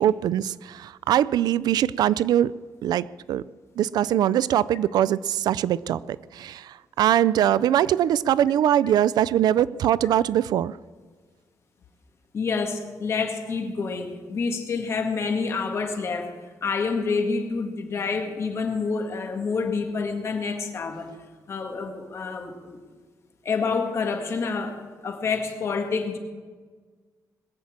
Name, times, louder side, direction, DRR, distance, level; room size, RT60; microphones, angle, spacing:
voice 1, 0.0-2.5 2.8-3.4 3.8-10.7, right 11 dB, 85° right, 19 dB, 0.4 m, -22 dB
voice 2, 12.3-16.3 16.6-21.1 21.5-22.8 23.4-26.2, left 4 dB, 40° left, 4 dB, 1.9 m, -28 dB
21.0 x 7.3 x 8.7 m, 1.5 s
wide cardioid pair, 170°, 7 cm